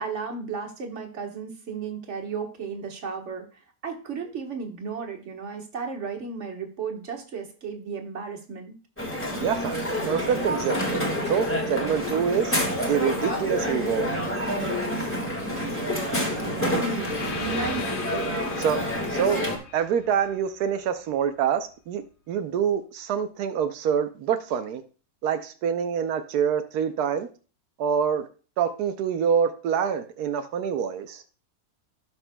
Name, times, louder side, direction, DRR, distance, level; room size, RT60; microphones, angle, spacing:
voice 1, 0.0-3.4 3.8-8.8 16.8-18.6, right 5 dB, 50° right, 2 dB, 1.6 m, -34 dB
Crowd, 9.0-19.6, equal, 10° left, 1.7 m, -28 dB
voice 2, 9.3-9.8 10.0-12.5 12.8-14.2 18.6-18.8 19.1-24.8 25.2-27.3 27.8-28.3 28.6-31.2, right 7 dB, 90° right, 8 dB, 1.2 m, -26 dB
sound 1, 16.8-20.8, left 6 dB, 50° left, 0.7 m, -39 dB
16.5 x 5.8 x 2.2 m, 0.37 s
omnidirectional pair, 1.6 m